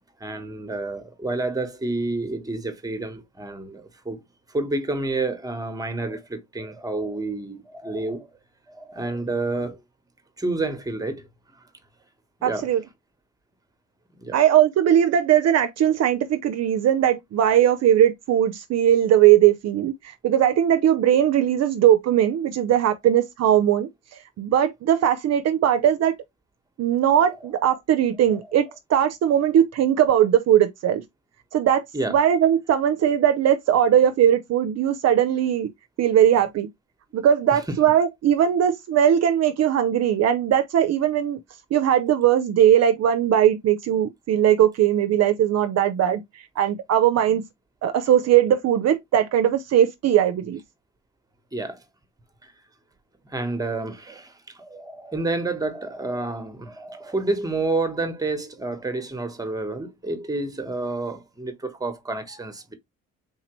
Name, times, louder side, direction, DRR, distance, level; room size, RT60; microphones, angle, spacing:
voice 1, 0.2-4.2 4.5-8.3 8.7-9.8 10.4-11.3 12.4-12.7 14.2-14.4 31.9-32.2 37.5-37.8 51.5-51.8 52.4-52.5 53.2-62.7, right 2 dB, 10° right, 1.0 m, -29 dB
voice 2, 12.4-12.8 14.3-23.9 24.4-26.2 26.8-31.0 31.5-35.7 36.0-36.7 37.1-41.4 41.7-46.2 46.6-47.4 47.8-50.6, right 10 dB, 60° right, 0.5 m, -19 dB
3.7 x 2.8 x 2.9 m
cardioid pair, 90°, 30 cm